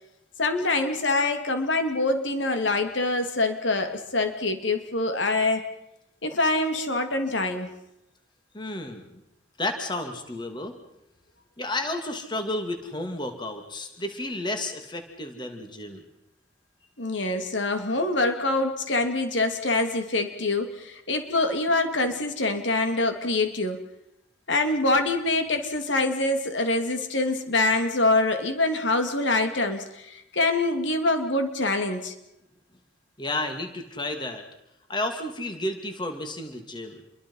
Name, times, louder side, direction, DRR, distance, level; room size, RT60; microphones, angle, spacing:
voice 1, 0.4-5.6 6.2-7.7 17.0-23.8 24.5-32.1, left 2 dB, 75° left, 6 dB, 2.8 m, -25 dB
voice 2, 8.5-9.0 9.6-10.8 11.6-16.0 33.2-34.4 34.9-37.0, left 1 dB, 25° left, 6 dB, 2.6 m, -32 dB
28.5 x 23.0 x 5.6 m, 0.82 s
head